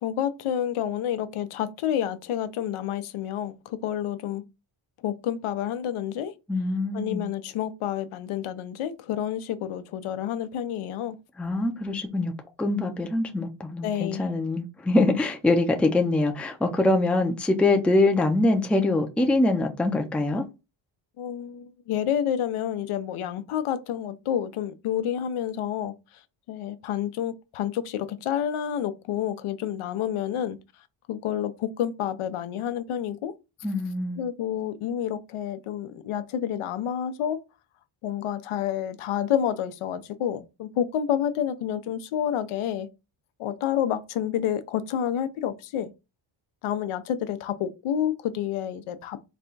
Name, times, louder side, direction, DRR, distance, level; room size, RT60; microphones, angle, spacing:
voice 1, 0.0-4.4 5.0-6.3 6.9-11.2 13.8-14.2 21.2-25.9 26.5-30.6 31.1-33.3 34.2-37.4 38.0-42.9 43.4-45.9 46.6-49.2, left 10 dB, 85° left, 0.7 m, -29 dB
voice 2, 6.5-7.3 11.4-12.3 12.6-20.4 33.6-34.2, left 2 dB, 5° left, 0.4 m, -24 dB
4.2 x 2.3 x 3.8 m
cardioid pair, 115°, 49 cm